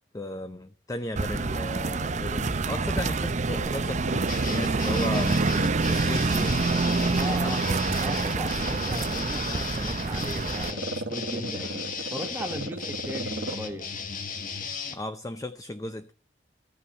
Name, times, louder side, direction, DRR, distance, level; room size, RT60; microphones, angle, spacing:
voice 1, 0.1-5.4 5.9-6.6 7.4-7.8 11.6-11.8 14.7-16.1, left 1 dB, 20° left, 0.5 m, -36 dB
sound 1, 1.2-10.7, right 3 dB, 40° right, 0.6 m, -27 dB
Growling, 1.2-3.0 3.4-6.4 6.8-13.7 14.0-14.1, right 2 dB, 80° right, 1.4 m, -36 dB
sound 2, 4.3-15.0, left 5 dB, 50° left, 1.5 m, -36 dB
voice 2, 7.1-7.6 8.0-11.8 12.1-13.9, equal, 10° right, 1.3 m, -37 dB
14.5 x 5.6 x 8.2 m
head